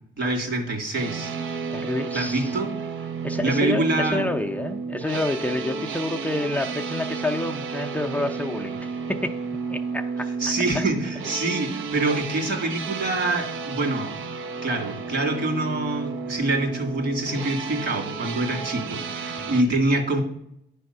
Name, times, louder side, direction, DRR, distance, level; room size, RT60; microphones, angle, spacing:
voice 1, 0.2-1.3 2.1-2.7 3.4-4.3 10.4-14.1 14.6-20.2, right 2 dB, 60° right, 2 dB, 2.2 m, -25 dB
sound 1, 0.9-19.6, right 5 dB, 85° right, 0.8 m, -32 dB
voice 2, 1.7-2.6 3.2-9.4 9.7-10.3 10.7-10.8 19.4-19.6, left 1 dB, 5° left, 6 dB, 0.5 m, -29 dB
9.0 x 3.5 x 6.6 m, 0.71 s
cardioid pair, 90°, 20 cm